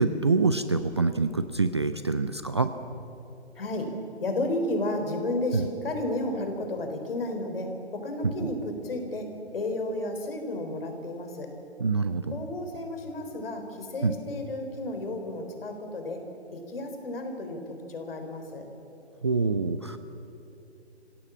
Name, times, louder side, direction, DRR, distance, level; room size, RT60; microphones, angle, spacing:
voice 1, 0.0-2.7 5.5-5.7 8.2-8.5 11.8-12.4 14.0-14.2 19.2-20.0, right 4 dB, 25° right, 10 dB, 0.4 m, -26 dB
voice 2, 3.6-3.9 4.2-9.3 9.5-11.5 12.3-16.2 16.5-18.6, left 1 dB, 55° left, 5 dB, 4.1 m, -32 dB
26.5 x 17.0 x 7.2 m, 2.8 s
figure-of-eight pair, 145°, 34 cm